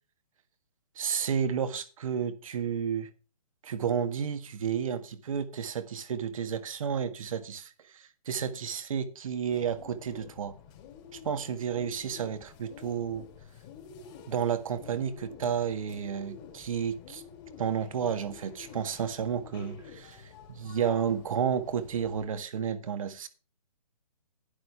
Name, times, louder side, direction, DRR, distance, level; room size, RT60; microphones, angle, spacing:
voice 1, 0.9-3.1 3.6-10.5 11.1-13.3 14.3-17.2 17.6-23.3, right 7 dB, 55° right, 1.6 m, -31 dB
Bird, 9.5-22.2, left 6 dB, 30° left, 3.6 m, -50 dB
11.5 x 11.0 x 3.5 m
figure-of-eight pair, 135°, 21 cm